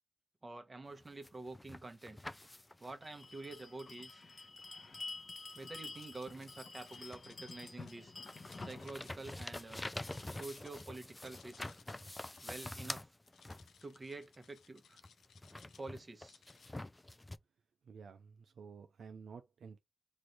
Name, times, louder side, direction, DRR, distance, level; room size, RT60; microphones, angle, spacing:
voice 1, 0.4-2.2 2.8-4.2 5.5-8.1 8.6-9.9 10.3-11.8 12.4-13.1 13.8-15.0 15.8-16.4, right 2 dB, 35° right, 1.0 m, -48 dB
sound 1, 1.0-3.0 4.6-4.7 5.3-7.4 7.8-14.0 15.0-17.4, left 1 dB, 20° left, 0.4 m, -47 dB
Bell, 3.0-10.3, left 3 dB, 50° left, 0.8 m, -50 dB
sound 2, 5.3-6.5 6.8-7.9 8.4-10.9 11.1-12.8 13.2-15.9 16.2-16.7, left 7 dB, 85° left, 0.4 m, -64 dB
voice 2, 17.8-19.8, right 6 dB, 75° right, 0.4 m, -52 dB
3.1 x 2.6 x 4.4 m
cardioid pair, 55°, 0 cm